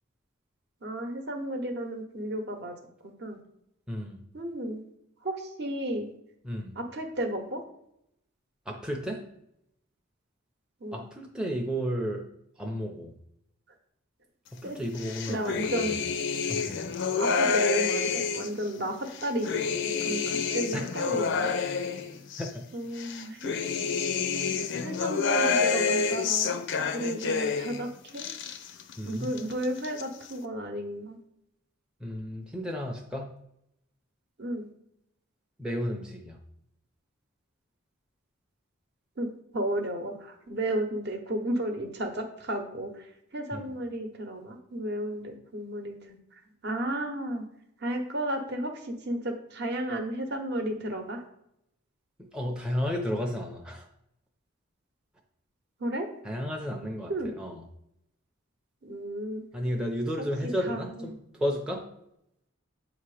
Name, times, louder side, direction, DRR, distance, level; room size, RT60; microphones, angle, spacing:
voice 1, 0.8-2.7 3.2-3.4 4.3-4.8 5.2-6.1 6.8-7.6 10.8-11.0 14.6-14.8 15.3-16.0 17.2-19.0 19.2-21.5 22.7-23.5 23.9-24.0 24.8-26.5 26.9-28.3 29.0-31.2 34.4-34.7 39.2-39.3 39.5-43.1 43.3-46.2 46.6-47.5 47.8-51.2 55.8-56.1 57.1-57.3 58.8-59.4 60.2-61.2, right 1 dB, 50° right, 4 dB, 0.9 m, -33 dB
voice 2, 3.9-4.2 6.4-6.8 8.7-9.2 10.9-12.2 12.6-13.1 14.6-16.0 16.5-16.8 20.7-20.9 22.4-22.5 29.0-29.3 32.0-33.3 35.6-36.4 43.5-43.7 52.3-53.9 56.2-57.1 57.4-57.6 59.5-61.8, equal, 5° right, 0 dB, 0.5 m, -32 dB
sound 1, 15.0-18.6 19.1-22.5 23.0-27.8 28.1-29.0 29.2-30.0, left 5 dB, 55° left, 0.5 m, -28 dB
7.5 x 2.9 x 4.9 m, 0.79 s
head